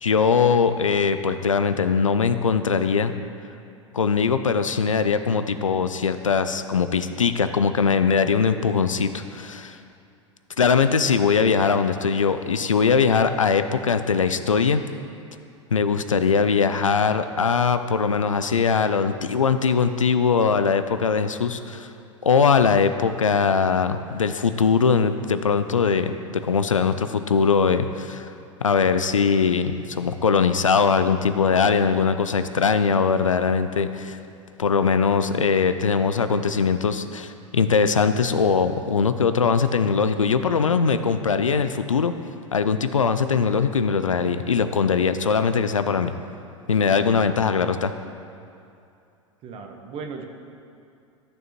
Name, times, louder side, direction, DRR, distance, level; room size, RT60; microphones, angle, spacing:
voice 1, 0.0-3.1 3.9-9.8 10.6-14.8 15.7-21.9 22.2-26.1 26.4-28.3 28.6-34.2 34.6-42.1 42.5-46.1 46.7-47.9, left 5 dB, 85° left, 10 dB, 0.4 m, -21 dB
voice 2, 49.4-50.3, right 5 dB, 35° right, 4 dB, 1.0 m, -36 dB
13.5 x 6.5 x 3.0 m, 2.6 s
figure-of-eight pair, 90°, 16 cm